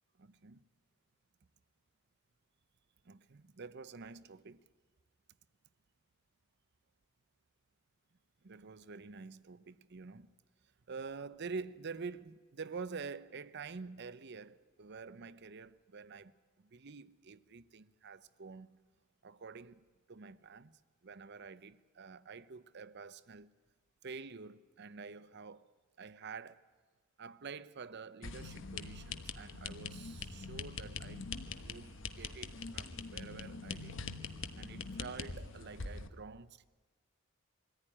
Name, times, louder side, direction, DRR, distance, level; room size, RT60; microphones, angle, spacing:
voice 1, 0.2-0.6 3.0-4.6 8.4-10.3 10.9-16.3 16.6-18.8 19.2-19.8 20.1-23.5 24.0-25.7 26.0-26.6 27.2-31.2 31.6-34.0 34.6-36.7, right 4 dB, 55° right, 0.7 m, -48 dB
sound 1, 28.2-36.1, left 4 dB, 65° left, 1.2 m, -43 dB
22.0 x 14.5 x 10.0 m
head